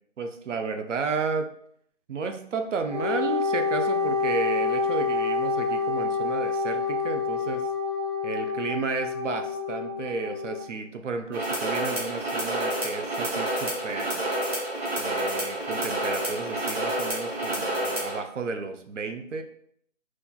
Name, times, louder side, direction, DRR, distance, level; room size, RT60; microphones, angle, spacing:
voice 1, 0.2-1.5 2.1-7.7 8.2-14.3 15.0-19.4, right 4 dB, 75° right, 6 dB, 0.5 m, -32 dB
Wind instrument woodwind instrument, 2.9-10.6, left 4 dB, 30° left, 0.4 m, -27 dB
sound 1, 11.3-18.2, right 1 dB, 55° right, 1.2 m, -29 dB
4.2 x 2.3 x 2.3 m, 0.66 s
figure-of-eight pair, 165°, 37 cm